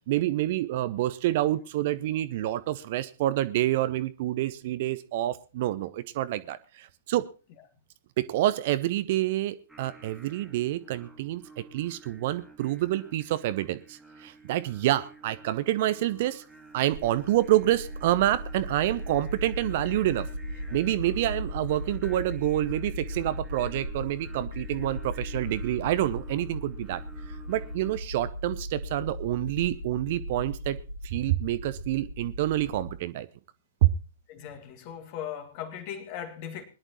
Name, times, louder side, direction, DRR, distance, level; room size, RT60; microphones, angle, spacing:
voice 1, 0.1-7.2 8.2-16.4 16.7-20.3 20.7-27.0 27.5-30.8 31.0-33.3 33.8-33.9, right 14 dB, 45° right, 0.7 m, -27 dB
Singing, 9.7-28.0, right 3 dB, ahead, 2.4 m, -51 dB
sound 1, 16.9-33.0, equal, 90° left, 1.2 m, -37 dB
voice 2, 34.3-36.6, left 9 dB, 35° left, 2.1 m, -38 dB
21.5 x 11.0 x 3.1 m
figure-of-eight pair, 110°, 0 cm